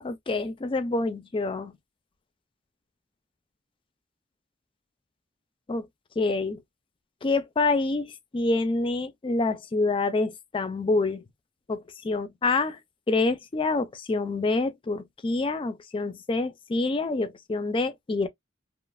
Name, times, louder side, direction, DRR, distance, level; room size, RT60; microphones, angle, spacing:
voice 1, 0.0-1.7 5.7-5.9 6.2-6.6 7.2-11.2 11.7-12.8 13.1-18.3, left 3 dB, 30° left, 0.4 m, -27 dB
3.1 x 2.0 x 2.2 m
head